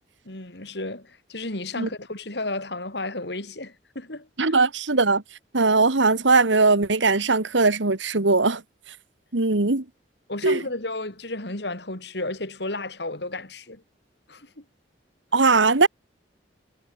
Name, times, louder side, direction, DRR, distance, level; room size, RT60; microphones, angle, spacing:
voice 1, 0.3-4.3 10.3-13.8 14.3-14.6, left 2 dB, 65° left, 3.4 m, -33 dB
voice 2, 4.4-5.2 5.5-8.6 9.3-9.9 10.4-10.6 15.3-15.9, right 3 dB, 85° right, 1.7 m, -20 dB
head